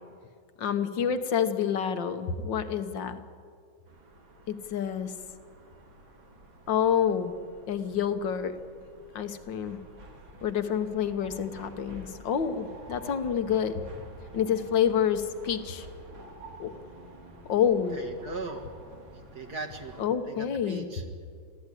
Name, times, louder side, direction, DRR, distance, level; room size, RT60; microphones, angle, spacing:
voice 1, 0.6-3.2 4.5-5.1 6.7-7.3 7.7-8.6 9.2-9.8 10.4-13.8 14.3-15.9 16.6-16.8 17.5-18.0 20.0-20.9, left 8 dB, 70° left, 10 dB, 1.9 m, -28 dB
sound 1, 3.9-20.1, right 1 dB, 80° right, 3.6 m, -49 dB
voice 2, 17.9-18.7 19.1-20.0 20.3-21.0, right 3 dB, 55° right, 4 dB, 2.1 m, -39 dB
24.0 x 15.5 x 10.0 m, 2.2 s
omnidirectional pair, 2.2 m